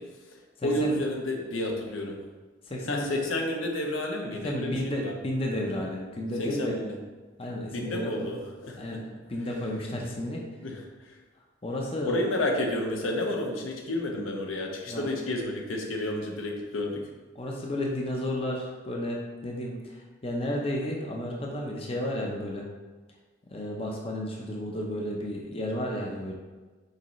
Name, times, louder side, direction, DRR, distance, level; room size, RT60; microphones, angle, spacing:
voice 1, 0.0-2.2 2.8-5.2 6.4-6.9 7.5-9.0 10.6-11.2 12.0-17.1, left 1 dB, 85° left, 1 dB, 0.9 m, -31 dB
voice 2, 0.6-1.0 2.7-3.1 4.4-6.8 7.4-8.3 8.8-10.4 11.6-12.2 14.9-15.1 17.3-22.7 23.5-26.3, left 1 dB, 30° left, -1 dB, 0.7 m, -32 dB
6.6 x 4.7 x 3.1 m, 1.3 s
head